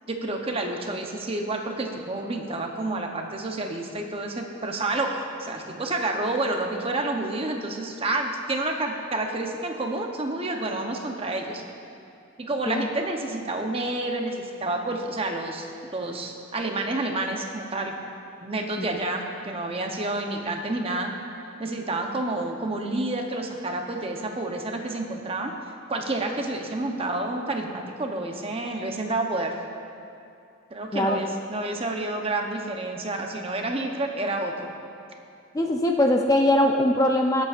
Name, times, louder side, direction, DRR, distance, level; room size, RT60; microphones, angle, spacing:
voice 1, 0.1-11.6 12.4-17.9 18.4-21.1 21.6-25.5 25.9-29.5 30.7-34.7, right 2 dB, 30° right, 2 dB, 0.8 m, -29 dB
voice 2, 35.5-37.4, left 1 dB, 15° left, 2 dB, 0.4 m, -21 dB
21.0 x 8.0 x 2.5 m, 2.5 s
head